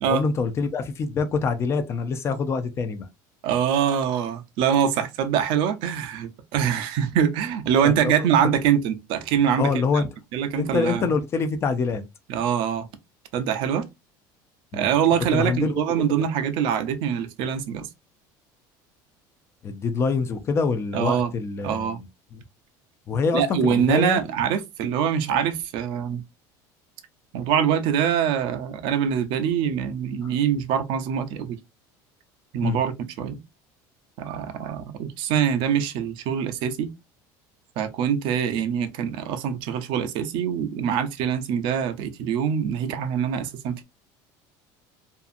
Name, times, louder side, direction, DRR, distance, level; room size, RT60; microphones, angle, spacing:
voice 1, 0.0-3.1 7.8-8.1 9.6-10.1 10.6-12.0 14.7-14.9 15.3-15.8 19.6-21.8 23.1-24.2 32.6-32.8, left 4 dB, 30° left, 0.4 m, -25 dB
voice 2, 3.4-10.0 10.3-11.1 12.3-12.9 13.3-13.9 14.7-17.9 20.9-21.3 21.6-22.0 23.3-26.2 27.3-31.6 32.5-33.4 34.2-36.9 37.8-43.8, right 8 dB, 65° right, 0.5 m, -24 dB
2.6 x 2.4 x 2.4 m
cardioid pair, 145°, 9 cm